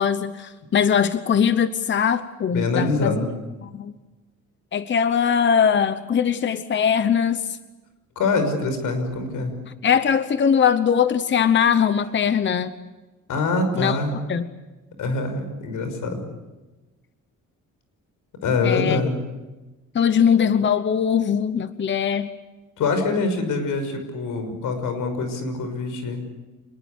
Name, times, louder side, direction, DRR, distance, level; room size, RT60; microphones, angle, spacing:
voice 1, 0.0-3.2 3.6-3.9 4.7-7.6 9.8-12.7 13.8-14.0 14.3-14.4 18.6-19.0 19.9-22.3, left 7 dB, 40° left, 12 dB, 1.0 m, -21 dB
voice 2, 2.5-3.3 8.2-9.5 13.3-14.1 15.0-16.2 18.4-19.2 22.8-26.3, left 3 dB, 90° left, 8 dB, 6.0 m, -24 dB
26.5 x 21.0 x 8.3 m, 1.1 s
cardioid pair, 145°, 31 cm